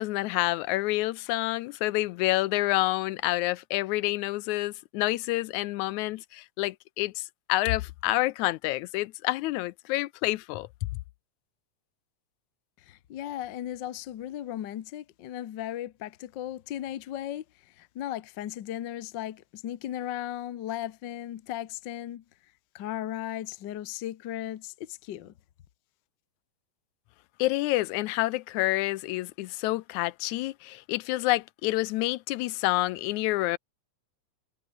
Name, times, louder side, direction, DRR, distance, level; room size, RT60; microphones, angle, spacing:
voice 1, 0.0-10.7 27.4-33.6, left 18 dB, 85° left, 2.0 m, -28 dB
voice 2, 12.8-22.2 22.7-25.3, left 12 dB, 65° left, 1.1 m, -36 dB
omnidirectional pair, 3.4 m